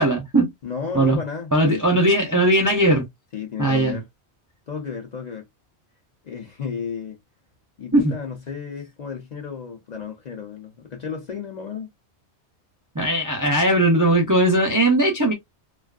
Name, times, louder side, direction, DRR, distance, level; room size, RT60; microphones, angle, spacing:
voice 1, 0.0-0.5 0.9-1.2 1.5-3.0 3.6-4.0 7.9-8.1 12.9-15.3, right 1 dB, 25° right, 0.4 m, -19 dB
voice 2, 0.6-1.8 3.3-4.1 4.7-5.5 6.2-7.2 7.8-11.9, left 6 dB, 45° left, 0.6 m, -33 dB
2.5 x 2.4 x 2.3 m
omnidirectional pair, 1.2 m